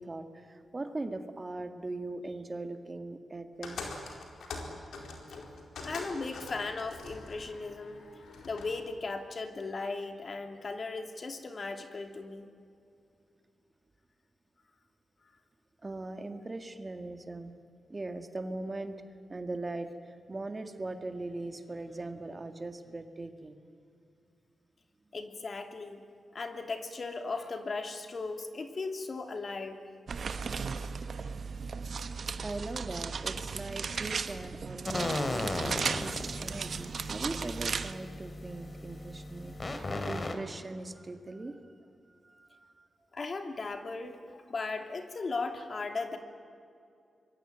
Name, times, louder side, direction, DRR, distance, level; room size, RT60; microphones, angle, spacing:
voice 1, 0.0-3.9 15.8-17.5 17.9-19.0 19.3-23.6 32.4-41.7 42.1-42.9, right 2 dB, 30° right, 7 dB, 2.0 m, -40 dB
sound 1, 3.6-8.8, left 3 dB, 90° left, 4.4 m, -43 dB
voice 2, 5.8-8.0 8.4-12.5 25.1-26.0 26.3-29.8 39.7-39.8 43.1-46.2, left 3 dB, 50° left, 6 dB, 2.8 m, -37 dB
sound 2, 30.1-37.9, right 5 dB, 65° right, 1.2 m, -36 dB
sound 3, 34.9-40.3, left 2 dB, 35° left, 3.0 m, -36 dB
26.0 x 22.5 x 9.3 m, 2.5 s
cardioid pair, 75°, 0 cm